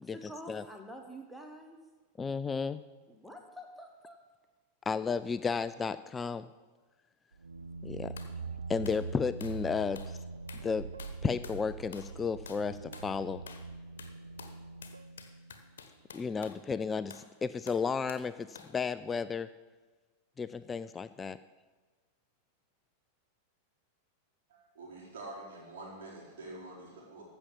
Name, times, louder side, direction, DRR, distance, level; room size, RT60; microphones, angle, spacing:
voice 1, 0.0-1.8 3.1-4.2, equal, ahead, 2 dB, 1.2 m, -47 dB
voice 2, 2.2-2.8 4.9-6.5 7.8-8.1 8.7-10.2 10.6-10.9 11.2-13.4 16.1-19.5 20.4-21.4, left 5 dB, 15° left, 14 dB, 0.3 m, -33 dB
sound 1, 7.3-15.9, right 4 dB, 75° right, 0.4 m, -43 dB
sound 2, 8.2-8.4 8.8-9.0 9.4-9.6 10.0-10.2 10.5-10.7 11.0-11.6 11.9-12.2 12.5-12.7 12.9-13.1 13.5-13.7 14.0-16.6 17.1-17.3 17.7-18.3 18.6-18.8, left 6 dB, 60° left, 1.2 m, -50 dB
voice 3, 24.5-27.2, right 2 dB, 60° right, -4 dB, 4.5 m, -46 dB
15.0 x 6.1 x 7.3 m, 1.3 s
figure-of-eight pair, 90°, 0 cm